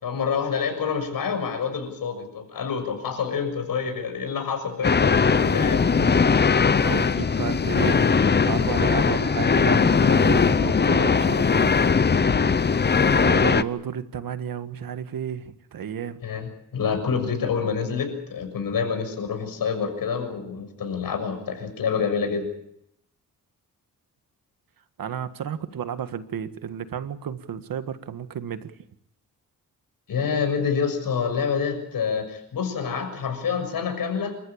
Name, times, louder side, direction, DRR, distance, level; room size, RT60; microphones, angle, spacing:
voice 1, 0.0-5.9 12.2-12.4 16.2-22.5 30.1-34.3, left 6 dB, 75° left, 6 dB, 6.8 m, -27 dB
sound 1, 4.8-13.6, left 5 dB, 30° left, 0.8 m, -20 dB
voice 2, 6.8-8.1 8.5-11.7 13.0-16.2 25.0-28.7, right 8 dB, 75° right, 10 dB, 1.7 m, -32 dB
28.0 x 14.5 x 8.8 m, 0.76 s
cardioid pair, 100°, 35 cm